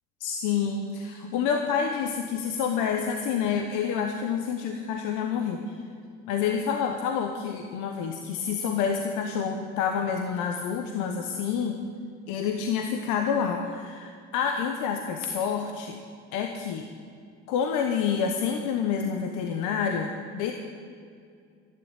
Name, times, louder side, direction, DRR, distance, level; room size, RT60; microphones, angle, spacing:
voice 1, 0.2-5.8 6.3-11.8 12.3-16.0 16.3-16.9 17.5-20.5, left 7 dB, 85° left, 4 dB, 1.1 m, -28 dB
12.0 x 10.0 x 9.0 m, 2.2 s
supercardioid pair, 80°, 29 cm